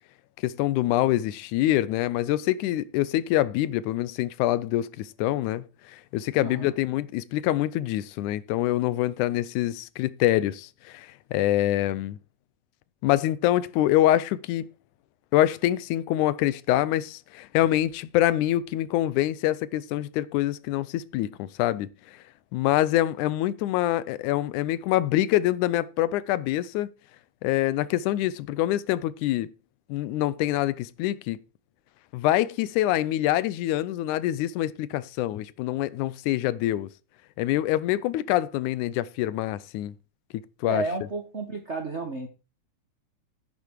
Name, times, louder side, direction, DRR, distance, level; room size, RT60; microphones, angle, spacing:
voice 1, 0.4-12.2 13.0-14.7 15.3-22.2 22.5-26.9 27.4-29.5 29.9-31.4 32.1-36.9 37.4-39.9 40.3-40.8, left 14 dB, 85° left, 2.1 m, -25 dB
voice 2, 6.4-6.7 40.6-42.3, right 3 dB, 55° right, 0.7 m, -32 dB
10.5 x 8.6 x 4.6 m
omnidirectional pair, 3.4 m